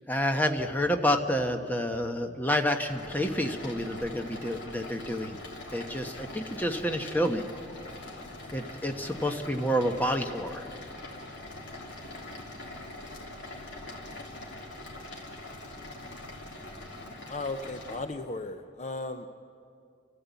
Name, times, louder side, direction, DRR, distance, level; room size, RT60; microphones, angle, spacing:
voice 1, 0.1-5.4 5.7-7.5 8.5-10.7, equal, 10° left, 5 dB, 1.0 m, -29 dB
sound 1, 2.9-18.0, left 1 dB, 70° left, 3.4 m, -43 dB
voice 2, 17.3-19.3, left 2 dB, 35° left, 7 dB, 0.7 m, -35 dB
28.5 x 14.0 x 8.2 m, 2.4 s
head